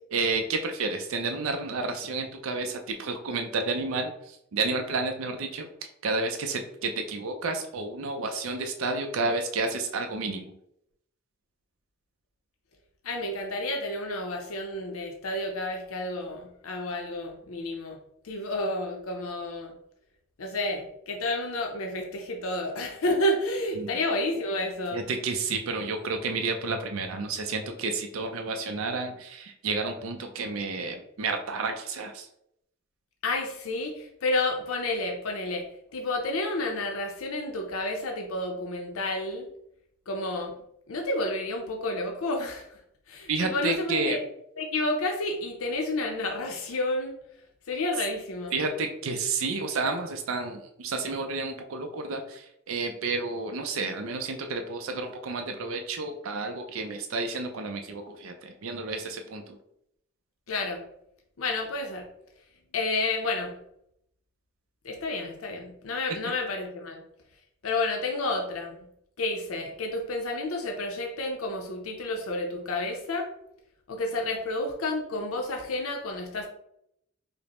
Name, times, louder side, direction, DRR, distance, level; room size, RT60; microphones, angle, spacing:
voice 1, 0.1-5.7 6.0-10.5 23.8-23.9 24.9-32.3 43.3-44.2 48.5-59.6 66.1-66.2, right 3 dB, 75° right, 5 dB, 0.5 m, -31 dB
voice 2, 13.0-18.0 18.2-19.7 20.4-25.0 33.2-35.6 35.9-39.5 40.1-40.5 40.9-42.8 43.1-44.2 44.6-47.1 47.7-48.5 60.5-60.8 61.4-62.1 62.7-63.5 64.8-67.0 67.6-68.8 69.2-73.3 73.9-76.5, left 2 dB, 90° left, 2 dB, 0.6 m, -30 dB
5.0 x 2.0 x 2.9 m, 0.76 s
head